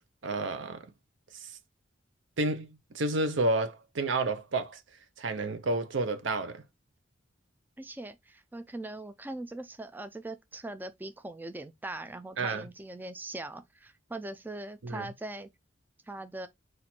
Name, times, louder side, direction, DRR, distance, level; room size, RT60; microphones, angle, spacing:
voice 1, 0.2-0.9 2.4-4.8 5.2-6.6 12.4-12.7 14.8-15.0, right 2 dB, 70° right, 0.7 m, -30 dB
voice 2, 7.8-15.5 16.1-16.5, right 2 dB, 10° right, 0.3 m, -41 dB
4.3 x 2.5 x 4.2 m
head